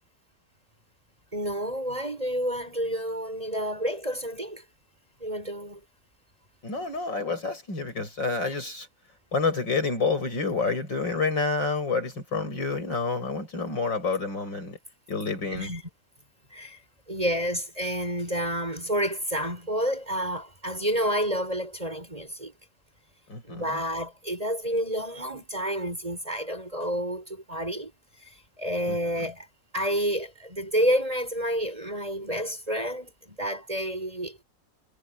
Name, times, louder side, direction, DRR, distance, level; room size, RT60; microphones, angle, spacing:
voice 1, 1.3-4.6 5.2-5.8 8.5-8.6 15.5-15.8 16.5-16.8 17.1-22.5 23.4-27.9 28.2-29.5 29.7-34.4, equal, 20° right, 6.6 m, -29 dB
voice 2, 6.6-8.9 9.3-14.8 15.1-15.7 23.3-23.8 28.9-29.0, left 4 dB, 70° left, 8.6 m, -28 dB
omnidirectional pair, 2.1 m